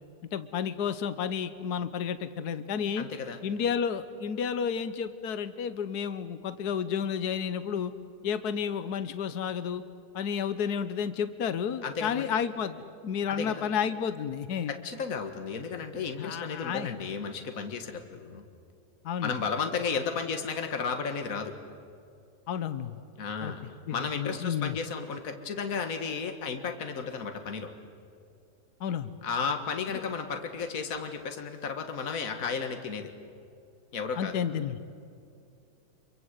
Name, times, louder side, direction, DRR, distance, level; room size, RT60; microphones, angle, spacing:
voice 1, 0.3-3.1 3.4-7.9 8.2-9.8 10.1-14.7 16.2-16.9 19.0-19.3 22.5-23.0 23.4-24.8 28.8-29.1 34.2-34.8, left 7 dB, 75° left, 12 dB, 1.5 m, -31 dB
voice 2, 3.0-3.4 11.8-12.3 13.3-13.6 14.7-18.4 19.2-21.5 23.2-23.6 23.9-27.7 29.2-33.1 33.9-34.3, left 5 dB, 55° left, 6 dB, 2.0 m, -33 dB
27.0 x 23.5 x 8.2 m, 2.4 s
omnidirectional pair, 1.8 m